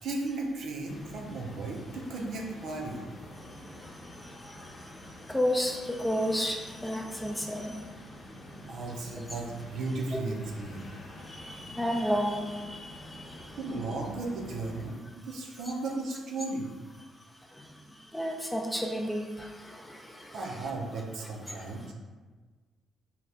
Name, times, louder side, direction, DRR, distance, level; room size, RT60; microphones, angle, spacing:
voice 1, 0.0-3.1 8.7-10.9 13.6-16.7 20.3-21.9, right 2 dB, 75° right, -1 dB, 0.6 m, -35 dB
sound 1, 0.8-14.9, left 1 dB, 45° left, 0.7 m, -47 dB
voice 2, 3.4-7.9 10.1-10.2 11.2-13.6 17.5-20.7 21.5-21.6, equal, 10° left, 1 dB, 0.4 m, -33 dB
2.8 x 2.3 x 3.3 m, 1.4 s
cardioid pair, 90°, 0 cm